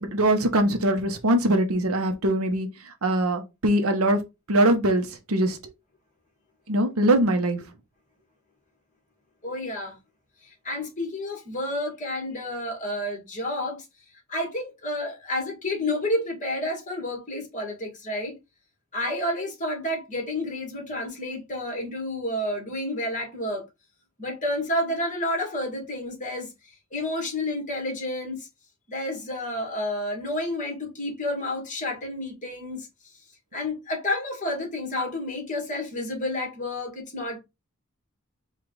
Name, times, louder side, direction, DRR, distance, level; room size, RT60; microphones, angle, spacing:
voice 1, 0.0-4.2 4.5-5.7 6.7-7.6, right 1 dB, 85° right, 0.9 m, -22 dB
voice 2, 9.4-10.0 10.4-13.8 14.3-18.4 18.9-23.6 24.2-26.5 26.9-28.5 28.9-33.1 33.5-37.4, left 1 dB, 35° left, 1.8 m, -30 dB
4.9 x 2.4 x 3.8 m
head